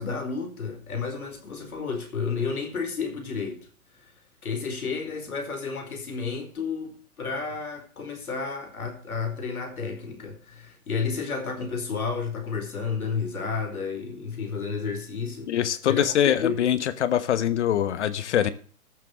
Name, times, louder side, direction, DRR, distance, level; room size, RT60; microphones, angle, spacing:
voice 1, 0.0-3.7 4.0-4.1 4.4-15.5 15.8-16.1 16.4-16.6, left 5 dB, 70° left, 4.9 m, -31 dB
voice 2, 15.5-18.5, left 10 dB, 50° left, 1.3 m, -23 dB
13.5 x 7.6 x 6.3 m
hypercardioid pair, 130°, 45 cm